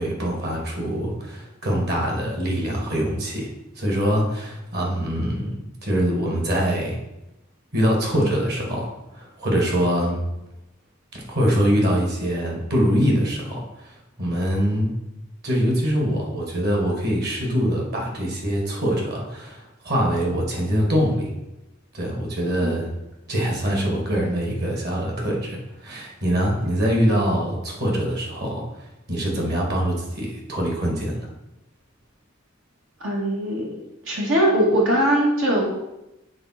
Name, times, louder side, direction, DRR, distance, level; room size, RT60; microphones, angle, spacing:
voice 1, 0.0-3.5 3.7-7.0 7.7-10.2 11.1-14.9 15.4-21.3 21.9-22.9 23.3-31.2, equal, 55° right, -1 dB, 2.3 m, -24 dB
voice 2, 33.0-33.8 34.0-35.8, right 1 dB, 80° right, -3 dB, 2.2 m, -21 dB
7.8 x 4.0 x 6.0 m, 0.93 s
head